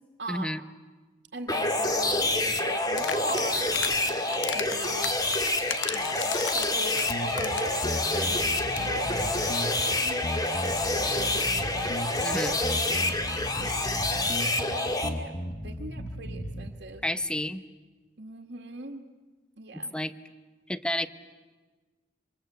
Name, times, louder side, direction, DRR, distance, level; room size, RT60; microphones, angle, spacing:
voice 1, 0.3-0.6 12.2-12.6 17.0-17.6 19.9-20.1 20.7-21.1, left 1 dB, 5° left, 11 dB, 0.9 m, -30 dB
voice 2, 1.3-5.1 5.9-10.3 11.0-11.4 12.2-12.5 13.3-13.7 14.5-15.4 15.6-17.0 18.2-19.1 19.6-19.9, right 3 dB, 65° right, 1 dB, 1.8 m, -40 dB
sound 1, 1.5-15.1, left 2 dB, 20° left, 2.3 m, -27 dB
sound 2, 2.9-4.0 4.3-7.8 8.1-8.2 8.4-8.5 8.7-8.9, left 8 dB, 80° left, 1.2 m, -35 dB
sound 3, 7.1-16.7, equal, 45° left, 2.1 m, -36 dB
27.5 x 26.0 x 8.0 m, 1.3 s
head